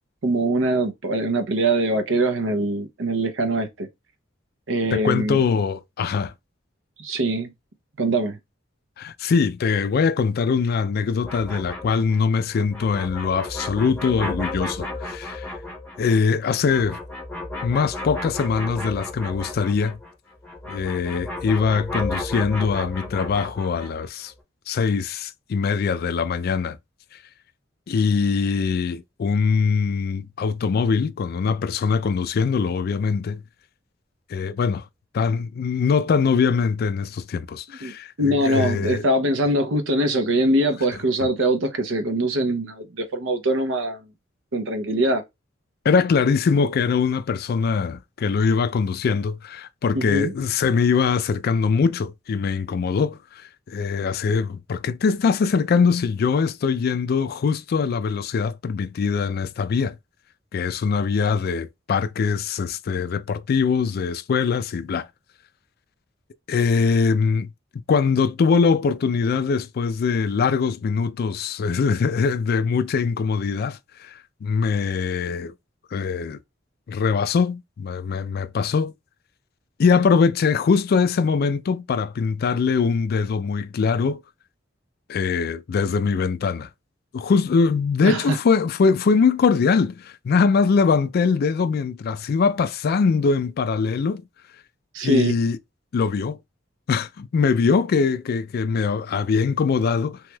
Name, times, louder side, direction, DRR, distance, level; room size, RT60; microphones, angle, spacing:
voice 1, 0.2-3.9 4.7-5.4 7.0-7.5 8.0-8.4 37.8-37.9 38.2-44.0 44.5-45.2 49.9-50.3 88.0-88.4 94.9-95.3, right 1 dB, 75° right, 0.7 m, -22 dB
voice 2, 4.9-6.3 9.0-15.5 16.0-17.0 17.6-20.0 20.7-24.3 24.7-26.8 27.9-33.4 34.3-34.8 35.1-39.1 45.8-60.0 60.5-65.1 66.5-67.5 67.9-75.5 75.9-76.4 76.9-78.9 79.8-84.2 85.1-86.7 87.1-94.2 95.0-95.6 95.9-96.4 96.9-100.2, left 5 dB, 55° left, 0.3 m, -22 dB
sound 1, 11.2-20.1 20.4-24.1, left 2 dB, 10° left, 0.8 m, -33 dB
3.2 x 3.0 x 2.2 m
head